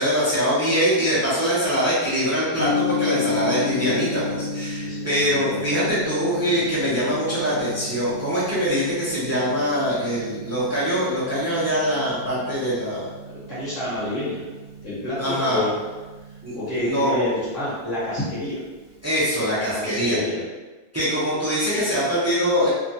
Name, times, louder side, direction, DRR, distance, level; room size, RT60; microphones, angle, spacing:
voice 1, 0.0-13.0 15.2-15.7 16.4-17.3 19.0-20.2 20.9-22.7, equal, 20° right, -10 dB, 0.4 m, -23 dB
Gong, 2.6-19.8, left 3 dB, 60° left, 1.4 m, -34 dB
voice 2, 13.2-14.4 14.8-15.7 16.6-18.6 19.7-20.4, left 1 dB, 40° left, -11 dB, 1.1 m, -28 dB
2.9 x 2.3 x 2.7 m, 1.2 s
omnidirectional pair, 1.6 m